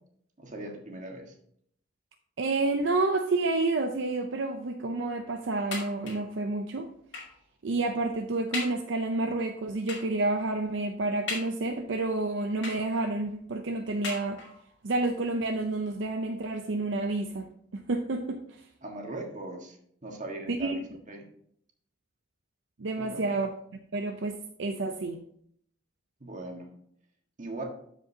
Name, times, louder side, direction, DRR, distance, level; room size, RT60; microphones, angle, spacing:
voice 1, 0.4-1.3 18.8-21.2 23.0-23.2 26.2-26.7 27.4-27.6, right 2 dB, 40° right, 1 dB, 1.6 m, -40 dB
voice 2, 2.4-6.9 7.6-14.4 14.8-17.5 17.7-18.4 20.5-20.8 22.8-23.5 23.9-25.2, right 2 dB, 75° right, 5 dB, 0.6 m, -29 dB
sound 1, 5.7-6.4 7.1-7.5 8.0-8.1 8.5-8.9 9.9-10.2 11.3-11.9 12.6-13.2 14.0-14.7 15.5-15.6 16.0-16.1, left 3 dB, 70° left, 2.4 m, -38 dB
12.5 x 5.2 x 2.8 m, 0.67 s
head